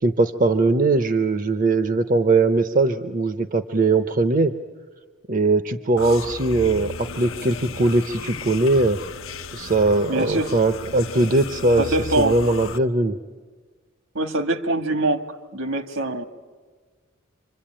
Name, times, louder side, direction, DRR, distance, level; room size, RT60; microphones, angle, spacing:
voice 1, 0.0-4.5 5.3-9.0 9.5-13.2, right 3 dB, 40° right, 9 dB, 0.7 m, -20 dB
sound 1, 6.0-12.8, left 3 dB, 80° left, 0.9 m, -35 dB
voice 2, 10.1-10.6 11.8-12.4 14.1-15.3 15.5-16.3, right 2 dB, 70° right, 7 dB, 1.7 m, -23 dB
26.5 x 25.5 x 8.9 m, 1.5 s
head